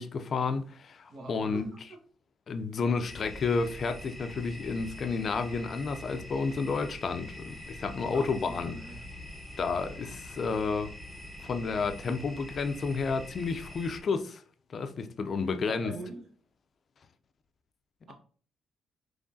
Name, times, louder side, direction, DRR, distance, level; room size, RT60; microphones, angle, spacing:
voice 1, 0.0-1.7 2.5-8.8 9.6-10.9 11.4-14.4 14.7-15.9, left 4 dB, 50° left, 0.4 m, -31 dB
voice 2, 1.1-1.8 7.9-9.0 15.4-16.2 18.1-18.2, right 2 dB, 60° right, 1.0 m, -44 dB
sound 1, 3.0-14.0, left 1 dB, 10° right, 1.1 m, -44 dB
3.6 x 3.1 x 2.6 m
cardioid pair, 90°, 0 cm